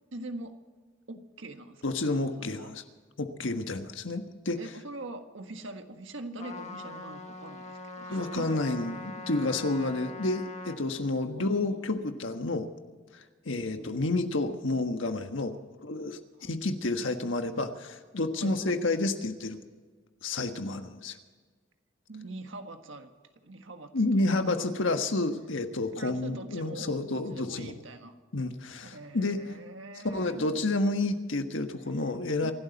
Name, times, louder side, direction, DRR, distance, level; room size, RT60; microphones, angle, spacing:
voice 1, 0.1-0.6 1.1-2.1 2.4-2.7 4.6-8.6 11.3-11.8 13.5-14.0 16.3-16.5 18.4-18.6 22.1-23.1 23.4-23.9 24.2-24.4 26.0-28.2 28.8-30.6 31.9-32.1 32.4-32.5, right 2 dB, 90° right, 6 dB, 1.5 m, -43 dB
voice 2, 1.8-2.8 3.2-4.6 8.1-12.7 13.4-15.6 15.8-19.6 20.2-21.2 23.9-27.7 28.3-29.4 30.0-32.5, left 2 dB, 85° left, 7 dB, 1.4 m, -30 dB
Trumpet, 6.4-10.8, left 2 dB, 40° left, 1.7 m, -42 dB
25.5 x 12.0 x 4.1 m, 1.4 s
head